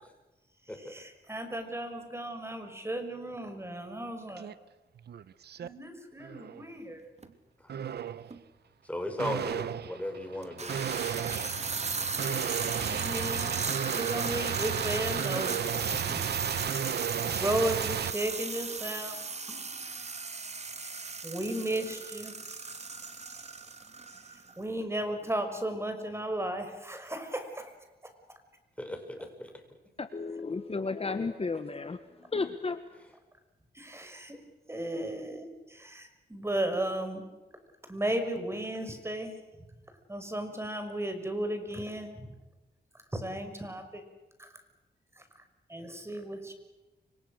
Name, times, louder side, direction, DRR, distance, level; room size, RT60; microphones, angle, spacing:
voice 1, 0.7-4.5 5.6-7.1 12.9-13.7 13.9-15.6 15.9-16.2 17.2-19.2 19.5-19.7 21.2-22.4 24.6-27.7 28.0-28.1 33.7-34.4 34.7-37.2 37.9-39.3 40.1-42.4 43.1-44.0 44.4-44.5 45.7-46.5, right 1 dB, 15° right, 7 dB, 5.6 m, -35 dB
sound 1, 4.4-4.5 5.0-5.7 6.2-6.6 7.7-8.3 9.2-18.1, right 9 dB, 90° right, 1.0 m, -34 dB
sound 2, 7.2-7.3 8.3-8.4 10.4-24.5, right 4 dB, 40° right, 2.9 m, -36 dB
voice 2, 8.9-10.8 28.8-29.5, left 1 dB, 10° left, 4 dB, 7.0 m, -36 dB
voice 3, 30.0-32.8, left 4 dB, 35° left, 10 dB, 1.5 m, -33 dB
29.5 x 26.0 x 6.5 m, 1.1 s
wide cardioid pair, 100°, 17 cm